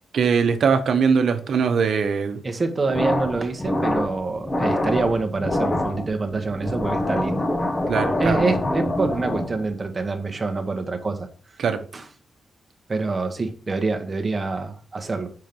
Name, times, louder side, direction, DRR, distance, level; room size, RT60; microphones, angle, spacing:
voice 1, 0.1-2.4 7.9-8.5 11.6-11.8, right 6 dB, 65° right, 1.0 m, -21 dB
voice 2, 2.4-7.5 8.2-11.3 11.9-12.1 12.9-15.3, right 3 dB, 25° right, 1.1 m, -26 dB
sound 1, 2.9-9.7, left 1 dB, 25° left, 1.0 m, -25 dB
5.8 x 4.6 x 5.2 m
wide cardioid pair, 140°, 0 cm